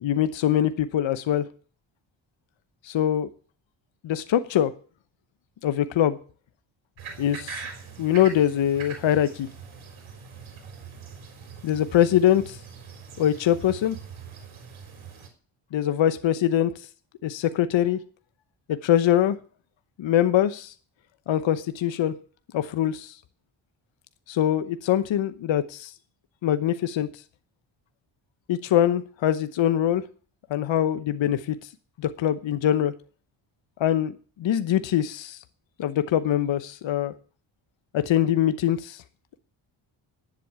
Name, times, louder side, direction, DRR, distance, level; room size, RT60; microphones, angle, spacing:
voice 1, 0.0-1.5 2.8-3.3 4.0-4.7 5.6-6.2 7.2-7.6 8.0-9.5 11.6-12.6 13.2-14.0 15.7-16.9 17.2-18.0 18.7-19.4 20.0-20.7 21.3-22.1 22.5-23.1 24.3-25.9 26.4-27.1 28.5-30.0 30.5-31.7 32.0-32.9 33.8-34.1 34.4-35.4 35.8-37.1 37.9-39.0, left 11 dB, 65° left, 12 dB, 1.0 m, -23 dB
sound 1, 7.0-15.3, right 6 dB, 75° right, 4.2 m, -42 dB
10.5 x 7.9 x 8.7 m, 0.40 s
cardioid pair, 80°, 48 cm